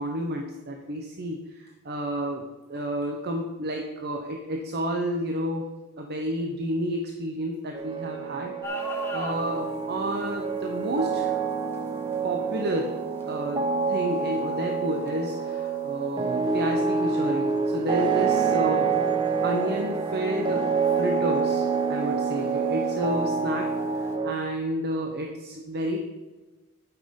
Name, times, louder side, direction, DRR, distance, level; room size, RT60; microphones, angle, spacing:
voice 1, 0.0-2.4 2.7-5.7 6.0-11.4 12.2-12.9 13.3-18.9 19.4-20.6 21.0-23.7 24.0-26.0, right 1 dB, 50° right, 2 dB, 0.9 m, -30 dB
sound 1, 7.7-24.3, right 5 dB, 20° right, 0.6 m, -27 dB
sound 2, 8.6-24.2, left 1 dB, 10° left, 1.4 m, -45 dB
11.5 x 6.0 x 5.2 m, 1.2 s
head